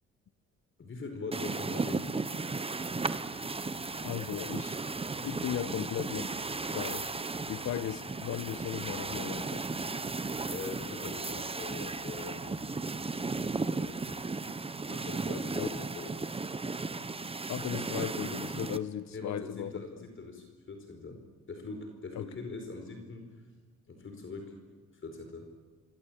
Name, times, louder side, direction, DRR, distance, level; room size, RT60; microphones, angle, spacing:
voice 1, 0.8-2.1 10.5-12.6 13.6-14.2 14.9-16.2 19.1-21.2 21.5-23.3 23.9-24.5 24.9-25.5, left 3 dB, 40° left, 5 dB, 4.8 m, -42 dB
sound 1, 1.3-18.8, right 3 dB, 20° right, 1.1 m, -35 dB
sound 2, 2.8-13.9, left 3 dB, 85° left, 7.8 m, -58 dB
voice 2, 4.0-4.8 5.2-7.1 7.4-9.6 15.6-15.7 17.5-20.1 22.1-22.3, left 10 dB, 65° left, 14 dB, 1.3 m, -37 dB
27.0 x 22.0 x 8.8 m, 1.5 s
cardioid pair, 90°, 30 cm